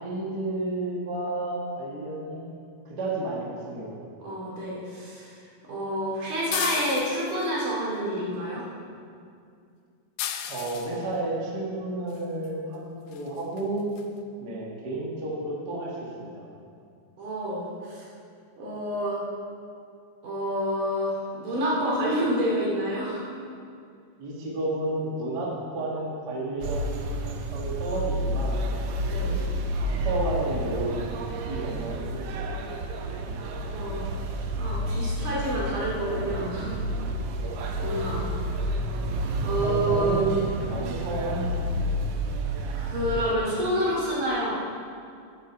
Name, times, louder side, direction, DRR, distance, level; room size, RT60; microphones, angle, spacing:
voice 1, 0.0-2.5 2.8-4.0 10.5-13.9 14.4-16.5 24.2-28.6 29.1-29.4 29.8-31.0 31.4-32.7 37.4-37.6 39.6-41.6, right 2 dB, 40° right, -4 dB, 1.6 m, -31 dB
voice 2, 4.2-5.3 5.7-8.6 17.2-18.1 18.6-19.2 20.2-23.3 29.1-29.5 33.7-34.0 34.6-36.8 37.8-38.3 39.4-40.2 42.8-44.5, equal, 65° right, -6 dB, 4.0 m, -28 dB
sound 1, 6.5-7.5 10.2-11.0 12.4-12.5 13.1-13.3 13.6-13.7 14.0-14.1, left 10 dB, 75° left, 1.9 m, -33 dB
sound 2, 26.6-43.3, right 1 dB, 85° right, 1.5 m, -30 dB
11.5 x 9.3 x 4.5 m, 2.3 s
omnidirectional pair, 3.9 m